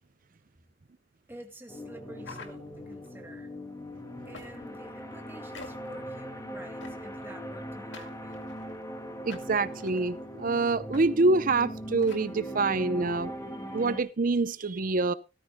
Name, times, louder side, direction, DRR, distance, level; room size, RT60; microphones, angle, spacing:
voice 1, 1.3-3.5 4.2-8.6, right 1 dB, 10° right, 3 dB, 2.0 m, -49 dB
sound 1, 1.7-14.0, equal, 20° left, 2.2 m, -40 dB
sound 2, 2.2-3.1 4.3-4.8 5.5-6.0 6.8-7.2 7.9-8.8 9.3-10.0 10.9-11.1 11.3-11.5 12.0-12.3, left 4 dB, 70° left, 2.1 m, -48 dB
voice 2, 9.2-13.3 13.7-15.1, right 3 dB, 50° right, 14 dB, 0.6 m, -26 dB
18.0 x 13.5 x 2.2 m, 0.29 s
head